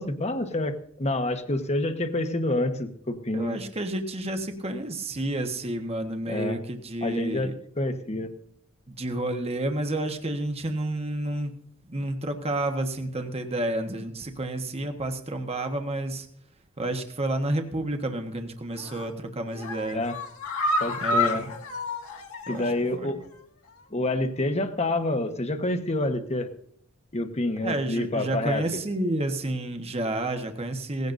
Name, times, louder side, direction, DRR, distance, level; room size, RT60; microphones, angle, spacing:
voice 1, 0.0-3.6 6.3-6.6 7.0-8.3 19.9-20.2 20.8-21.4 22.5-23.2 23.9-26.5 27.1-28.8, left 1 dB, 30° left, 7 dB, 1.2 m, -28 dB
voice 2, 3.3-7.5 8.9-11.5 11.9-16.3 16.8-20.0 21.0-21.5 22.5-22.7 23.0-23.1 27.6-31.1, right 1 dB, 30° right, 5 dB, 1.2 m, -30 dB
sound 1, 18.7-19.1 19.5-22.9 23.2-23.3 23.7-23.8, left 2 dB, 80° left, 2.0 m, -29 dB
18.0 x 16.0 x 2.6 m, 0.65 s
head